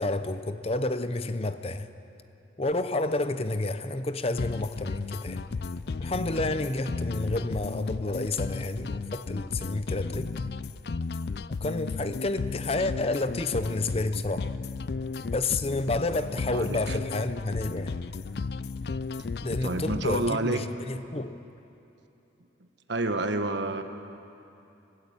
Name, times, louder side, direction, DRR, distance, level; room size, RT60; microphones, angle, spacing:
voice 1, 0.0-1.9 2.6-5.4 6.0-10.3 11.5-14.5 15.3-17.9 19.4-21.4, left 2 dB, 30° left, 11 dB, 0.8 m, -30 dB
sound 1, 4.4-20.4, left 4 dB, 55° left, 0.4 m, -34 dB
voice 2, 16.4-17.0 19.6-20.6 22.9-23.8, right 2 dB, 70° right, 8 dB, 1.3 m, -29 dB
25.0 x 16.0 x 8.6 m, 2.9 s
head